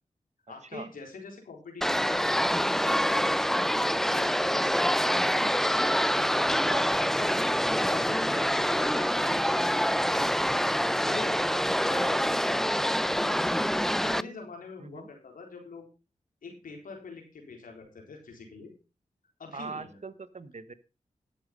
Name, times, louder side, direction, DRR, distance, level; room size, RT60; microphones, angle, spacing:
voice 1, 0.5-2.5 2.8-5.5 7.2-7.4 7.7-10.5 11.1-11.4 11.8-15.9 16.4-18.7 19.4-20.0, left 4 dB, 90° left, 2 dB, 4.1 m, -44 dB
sound 1, 1.8-14.2, equal, 5° left, 0.5 m, -26 dB
voice 2, 6.3-6.9 11.5-11.6 11.9-12.0 14.8-15.1 19.5-20.7, right 4 dB, 55° right, 14 dB, 1.3 m, -41 dB
12.0 x 8.3 x 5.3 m, 0.32 s
cardioid pair, 40°, 14 cm